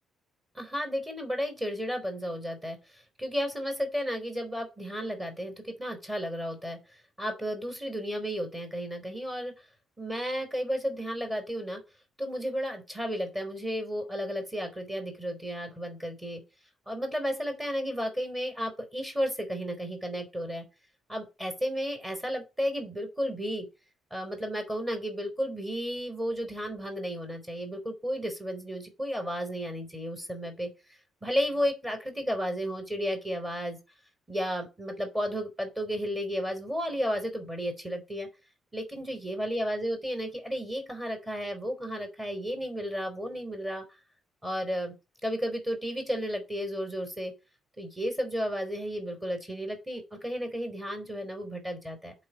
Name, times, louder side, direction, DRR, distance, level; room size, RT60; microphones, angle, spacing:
voice 1, 0.5-9.5 10.0-11.8 12.2-16.4 16.9-20.7 21.1-23.7 24.1-33.8 34.3-38.3 38.7-43.8 44.4-44.9 45.2-47.3 47.8-52.1, equal, 15° right, 4 dB, 3.4 m, -33 dB
8.5 x 4.0 x 6.3 m, 0.27 s
cardioid pair, 90°, 0 cm